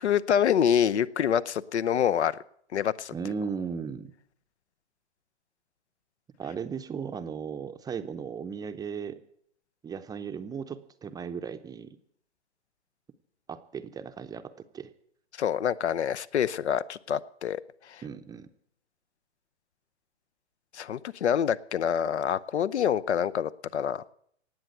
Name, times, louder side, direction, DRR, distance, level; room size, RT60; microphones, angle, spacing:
voice 1, 0.0-2.3 2.7-3.1 15.4-17.6 17.9-18.0 20.7-24.0, left 9 dB, 75° left, 18 dB, 0.8 m, -26 dB
voice 2, 3.1-4.1 6.4-9.2 9.8-12.0 13.5-14.9 18.0-18.5, right 6 dB, 10° right, 9 dB, 0.7 m, -36 dB
18.5 x 7.8 x 9.1 m, 0.66 s
hypercardioid pair, 120°, 34 cm